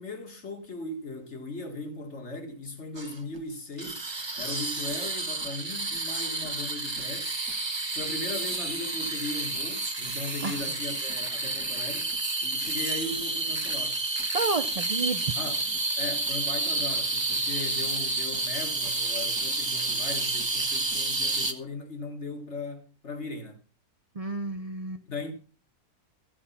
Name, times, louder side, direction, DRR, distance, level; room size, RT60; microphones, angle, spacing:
voice 1, 0.0-4.1 4.4-7.3 7.9-12.1 12.4-14.0 15.4-23.6 25.1-25.3, left 2 dB, 50° left, 2.2 m, -38 dB
sound 1, 3.0-3.4 3.8-21.5, right 3 dB, 20° right, 0.9 m, -30 dB
voice 2, 14.3-15.2 24.2-25.0, right 3 dB, 65° right, 0.3 m, -30 dB
14.5 x 8.2 x 5.6 m
omnidirectional pair, 1.6 m